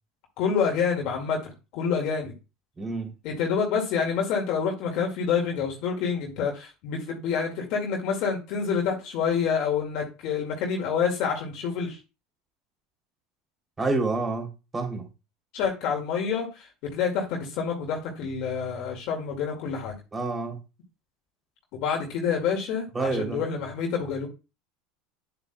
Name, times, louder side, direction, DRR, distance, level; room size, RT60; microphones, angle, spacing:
voice 1, 0.4-2.3 3.2-12.0 15.5-16.7 16.9-20.0 21.8-24.3, left 6 dB, 60° left, 0 dB, 2.1 m, -27 dB
voice 2, 2.8-3.1 13.8-15.1 20.1-20.6 22.9-23.4, right 3 dB, 20° right, 2 dB, 3.1 m, -28 dB
9.2 x 7.8 x 2.3 m, 0.29 s
hypercardioid pair, 85°, 0 cm